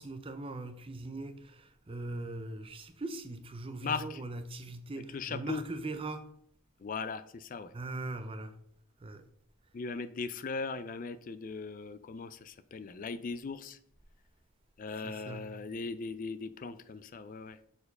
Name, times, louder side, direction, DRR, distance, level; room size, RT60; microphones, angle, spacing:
voice 1, 0.0-6.3 7.7-8.6 9.0-9.3 14.9-15.6, right 2 dB, 25° right, 0.5 m, -40 dB
voice 2, 3.8-4.2 5.1-5.6 6.8-7.7 9.7-13.8 14.8-17.6, left 4 dB, 40° left, 0.3 m, -38 dB
6.7 x 4.5 x 5.3 m
head